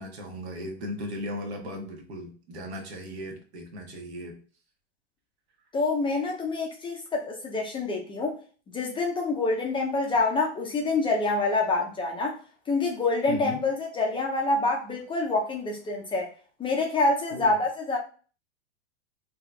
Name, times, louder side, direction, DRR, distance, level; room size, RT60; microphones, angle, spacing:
voice 1, 0.0-4.3 13.3-13.6 17.3-17.5, equal, 70° right, 1.1 m, -37 dB
voice 2, 5.7-8.3 8.7-12.4 12.7-16.3 16.6-18.0, left 3 dB, 15° left, 0.4 m, -26 dB
3.6 x 2.8 x 2.2 m
hypercardioid pair, 110°, 34 cm